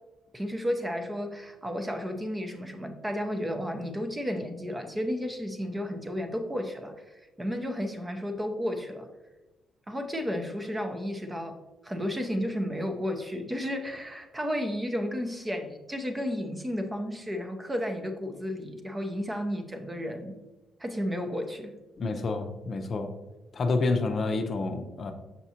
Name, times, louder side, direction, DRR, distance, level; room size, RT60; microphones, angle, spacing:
voice 1, 0.3-9.1 9.9-11.6 11.8-20.3 20.8-21.7, equal, 15° right, 5 dB, 0.7 m, -32 dB
voice 2, 22.0-23.1 23.5-25.1, left 3 dB, 45° left, 5 dB, 0.6 m, -28 dB
5.9 x 5.8 x 2.8 m, 1.1 s
cardioid pair, 90°, 0 cm